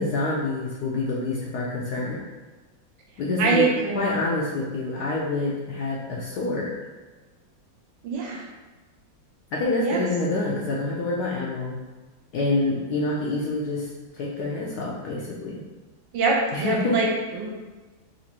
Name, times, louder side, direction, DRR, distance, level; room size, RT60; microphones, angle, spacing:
voice 1, 0.0-2.2 3.2-3.7 3.9-6.7 9.5-11.8 12.3-13.9 14.1-15.6 16.5-17.0, left 2 dB, 70° left, -5 dB, 0.9 m, -27 dB
voice 2, 3.4-4.1 8.0-8.5 9.8-10.0 16.1-17.5, right 4 dB, 75° right, -1 dB, 1.2 m, -24 dB
4.2 x 2.5 x 2.8 m, 1.2 s
omnidirectional pair, 2.1 m